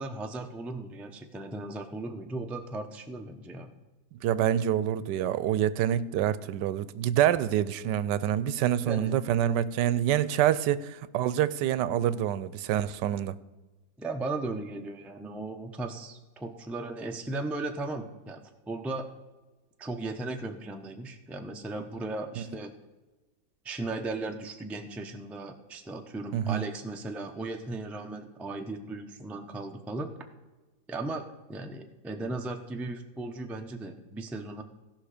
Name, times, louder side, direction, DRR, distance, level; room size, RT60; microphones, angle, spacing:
voice 1, 0.0-3.7 8.9-9.1 14.0-19.1 19.8-22.7 23.6-30.1 30.9-34.6, right 2 dB, ahead, 4 dB, 0.4 m, -36 dB
voice 2, 4.2-13.4 22.4-22.5 26.3-26.6, right 11 dB, 90° right, 17 dB, 1.2 m, -26 dB
16.5 x 5.8 x 5.0 m, 1.2 s
omnidirectional pair, 1.8 m